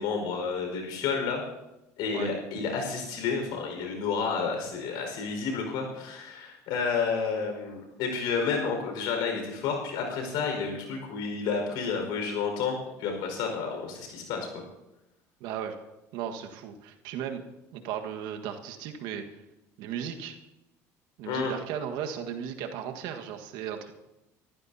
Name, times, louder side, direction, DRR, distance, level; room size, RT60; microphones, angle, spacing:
voice 1, 0.0-1.4 2.0-14.6 21.2-21.5, left 5 dB, 70° left, 3 dB, 5.1 m, -30 dB
voice 2, 15.4-15.8 16.1-17.4 17.7-19.2 19.8-20.4 21.2-23.9, right 9 dB, 75° right, 4 dB, 1.6 m, -36 dB
26.0 x 14.5 x 2.8 m, 0.96 s
hypercardioid pair, 75°, 8 cm